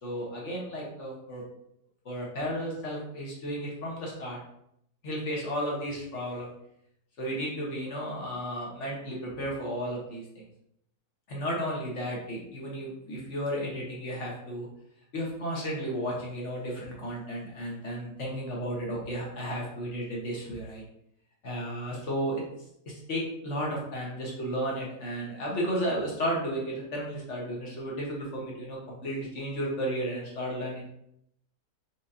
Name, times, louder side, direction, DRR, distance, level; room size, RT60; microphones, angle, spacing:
voice 1, 0.0-1.4 2.0-4.4 5.0-6.5 7.2-10.2 11.3-14.7 15.1-20.8 21.4-22.4 22.9-30.9, equal, 45° left, -3 dB, 1.4 m, -33 dB
5.1 x 3.5 x 2.8 m, 0.74 s
omnidirectional pair, 1.9 m